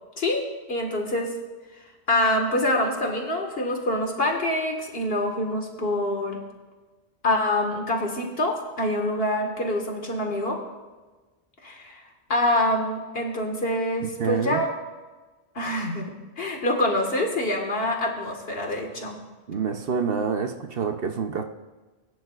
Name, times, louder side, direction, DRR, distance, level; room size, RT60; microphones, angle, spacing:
voice 1, 0.2-1.3 2.1-6.4 7.2-10.6 11.6-12.0 12.3-14.7 15.6-19.2, left 1 dB, 65° left, 2 dB, 1.9 m, -25 dB
voice 2, 14.0-14.6 19.5-21.4, right 6 dB, 60° right, 6 dB, 1.0 m, -27 dB
20.0 x 10.5 x 2.4 m, 1.3 s
omnidirectional pair, 1.1 m